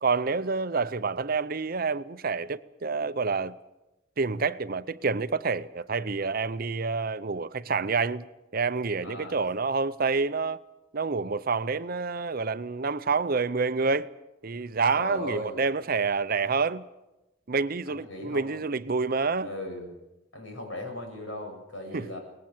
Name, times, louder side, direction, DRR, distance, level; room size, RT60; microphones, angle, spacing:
voice 1, 0.0-3.5 4.2-8.2 8.5-10.6 10.9-14.1 14.4-16.8 17.5-19.5 21.9-22.1, right 4 dB, 50° right, 0.7 m, -28 dB
voice 2, 9.0-9.4 15.0-15.6 17.9-18.6 19.4-19.9 20.3-22.2, left 1 dB, 85° left, 7.8 m, -37 dB
23.0 x 20.0 x 7.3 m
head